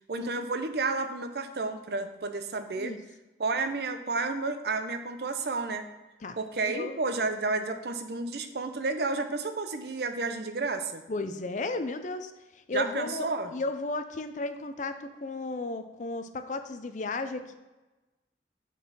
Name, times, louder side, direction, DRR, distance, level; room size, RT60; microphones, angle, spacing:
voice 1, 0.1-2.9 3.4-5.8 6.4-11.0 12.7-13.5, right 3 dB, 60° right, 8 dB, 0.6 m, -31 dB
voice 2, 6.6-7.0 11.1-17.5, left 2 dB, 45° left, 9 dB, 0.5 m, -34 dB
6.1 x 4.0 x 5.4 m, 1.1 s
head